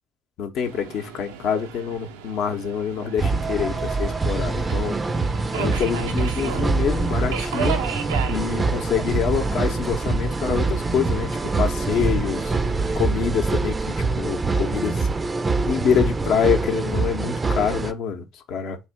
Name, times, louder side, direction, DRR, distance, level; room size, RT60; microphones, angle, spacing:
voice 1, 0.4-5.0 5.5-7.8 8.3-12.5 13.0-15.1 15.6-18.8, left 7 dB, 60° left, 0.8 m, -26 dB
Subway metro underground, 0.6-13.0, right 8 dB, 80° right, 0.5 m, -36 dB
sound 1, 3.2-17.9, right 3 dB, 25° right, 0.4 m, -24 dB
3.2 x 2.7 x 4.5 m
hypercardioid pair, 60°, 0 cm